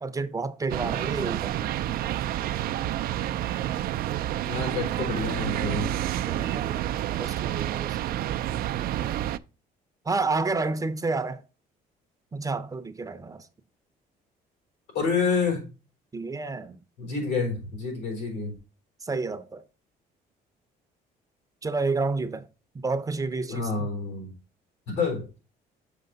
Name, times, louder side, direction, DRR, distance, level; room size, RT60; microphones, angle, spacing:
voice 1, 0.0-1.7 6.3-8.0 10.1-11.4 12.3-13.4 16.1-16.8 19.0-19.6 21.6-22.5 22.7-23.9, right 3 dB, 20° right, 0.6 m, -30 dB
sound 1, 0.7-9.4, right 12 dB, 60° right, 0.4 m, -29 dB
voice 2, 4.4-5.9 14.9-15.6 17.0-18.5 23.5-24.3 24.9-25.3, left 4 dB, 90° left, 3.9 m, -28 dB
6.6 x 4.8 x 3.9 m
cardioid pair, 110°, 17 cm